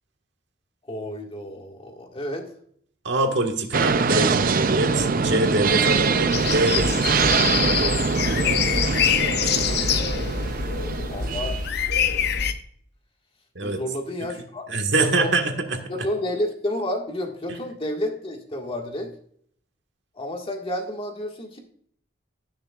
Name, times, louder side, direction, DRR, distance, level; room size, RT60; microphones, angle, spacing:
voice 1, 0.9-2.5 9.5-10.4 11.1-11.6 13.6-14.7 15.0-15.3 15.9-19.1 20.2-21.6, left 1 dB, 30° left, 2 dB, 1.7 m, -31 dB
voice 2, 3.0-7.1 13.5-13.8 14.7-15.8, right 2 dB, 70° right, 4 dB, 1.6 m, -24 dB
sound 1, 3.7-11.7, right 5 dB, 50° right, 0.5 m, -23 dB
sound 2, 6.3-12.5, left 6 dB, 60° left, 0.8 m, -24 dB
17.5 x 6.6 x 2.4 m, 0.63 s
head